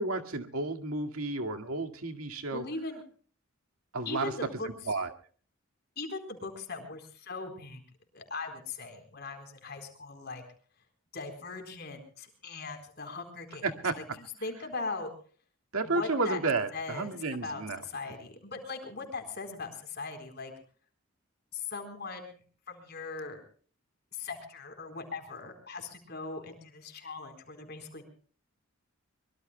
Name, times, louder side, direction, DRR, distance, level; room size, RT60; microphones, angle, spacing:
voice 1, 0.0-2.6 3.9-4.3 4.9-5.1 13.6-14.0 15.7-17.8, right 3 dB, 90° right, 5 dB, 2.1 m, -32 dB
voice 2, 2.5-3.0 4.1-4.7 6.0-7.8 8.1-10.4 11.1-13.7 14.0-15.1 15.8-16.4 16.7-17.1 17.4-20.5 21.5-22.4 22.7-23.4 24.1-28.0, left 3 dB, 50° left, 5 dB, 4.2 m, -39 dB
24.0 x 22.5 x 2.2 m, 0.43 s
head